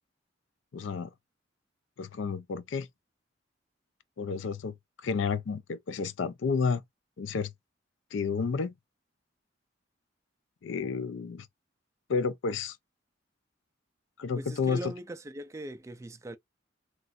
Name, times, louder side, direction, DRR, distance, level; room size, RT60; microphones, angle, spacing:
voice 1, 0.7-1.1 2.0-2.9 4.2-4.7 5.0-6.8 7.2-7.5 8.1-8.7 10.6-11.5 12.1-12.8 14.2-14.9, left 5 dB, 80° left, 0.4 m, -31 dB
voice 2, 14.3-16.4, right 1 dB, 15° right, 0.3 m, -40 dB
3.1 x 2.4 x 2.5 m
head